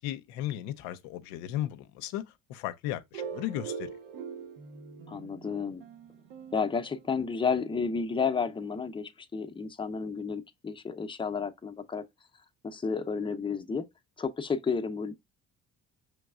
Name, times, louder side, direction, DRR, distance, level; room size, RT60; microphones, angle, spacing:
voice 1, 0.0-3.9, left 13 dB, 90° left, 0.5 m, -35 dB
sound 1, 3.1-7.7, right 6 dB, 80° right, 1.0 m, -43 dB
voice 2, 5.1-5.8 6.5-12.0 12.6-13.9 14.2-15.2, left 5 dB, 15° left, 0.5 m, -31 dB
5.2 x 3.2 x 2.3 m
supercardioid pair, 65°, 36 cm